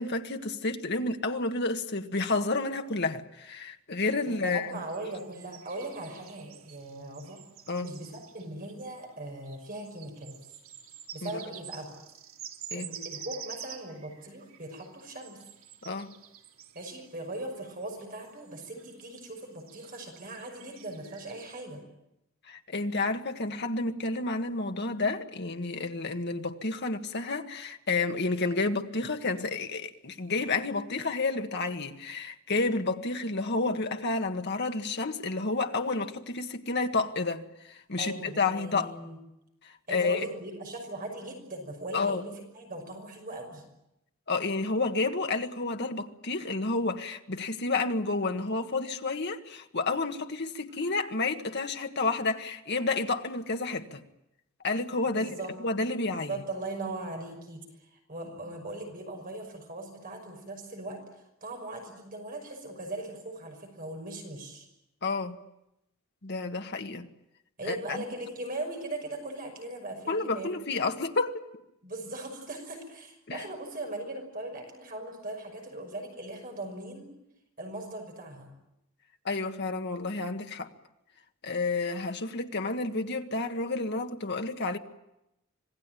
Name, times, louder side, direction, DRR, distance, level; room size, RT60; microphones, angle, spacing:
voice 1, 0.0-4.8 7.7-7.9 11.2-11.3 12.7-12.9 15.8-16.1 22.5-38.9 39.9-40.2 41.9-42.2 44.3-54.0 54.6-55.3 55.6-56.4 65.0-65.4 66.2-67.1 67.6-68.0 70.1-71.4 73.3-73.4 79.2-80.7 81.4-84.8, left 3 dB, 55° left, 1.6 m, -30 dB
voice 2, 4.3-7.4 7.8-10.4 11.1-11.9 12.7-15.4 16.7-21.8 38.0-39.2 39.9-43.6 55.1-55.6 56.1-61.0 61.4-64.7 67.6-70.6 70.9-71.0 71.8-77.1 77.6-78.5, right 2 dB, 45° right, 5.8 m, -39 dB
sound 1, 4.3-21.6, right 9 dB, 90° right, 2.8 m, -49 dB
26.5 x 19.0 x 9.1 m
head